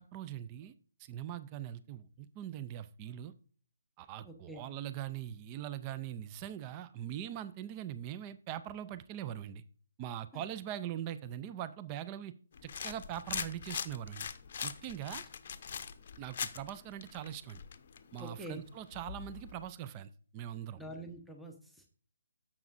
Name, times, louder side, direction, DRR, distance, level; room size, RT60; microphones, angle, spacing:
voice 1, 0.1-0.7 1.0-3.3 4.0-9.6 10.0-12.3 12.6-14.3 14.6-15.2 16.2-17.6 18.1-20.8, right 11 dB, 25° right, 13 dB, 0.4 m, -42 dB
voice 2, 4.2-4.6 10.3-10.4 18.2-18.6 20.7-21.8, right 1 dB, ahead, 3 dB, 0.9 m, -46 dB
sound 1, 12.5-19.6, left 7 dB, 45° left, 0.7 m, -43 dB
10.5 x 7.3 x 2.5 m, 0.42 s
figure-of-eight pair, 140°, 0 cm